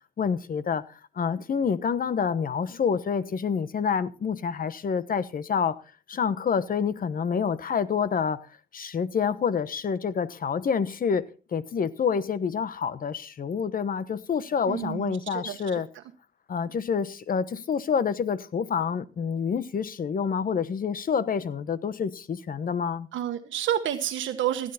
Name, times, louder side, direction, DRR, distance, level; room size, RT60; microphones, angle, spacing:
voice 1, 0.2-0.8 1.2-5.8 6.1-8.5 8.7-15.9 16.5-23.1, left 6 dB, 45° left, 1.1 m, -27 dB
voice 2, 14.7-16.0 23.1-24.7, right 11 dB, 75° right, 1.3 m, -30 dB
16.5 x 9.4 x 4.3 m
cardioid pair, 90°, 20 cm